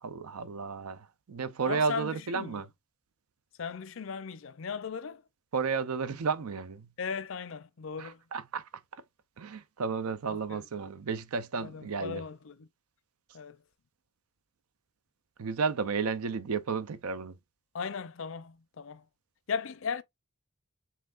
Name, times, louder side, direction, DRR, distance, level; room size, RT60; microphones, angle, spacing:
voice 1, 0.0-2.7 5.5-6.9 8.0-8.7 9.4-12.2 15.4-17.4, right 5 dB, 90° right, 0.5 m, -32 dB
voice 2, 1.6-2.6 3.6-5.2 7.0-8.2 10.3-10.7 11.6-12.7 13.3-13.6 17.7-19.1 19.5-20.0, left 6 dB, 65° left, 0.5 m, -37 dB
5.5 x 3.5 x 2.4 m
head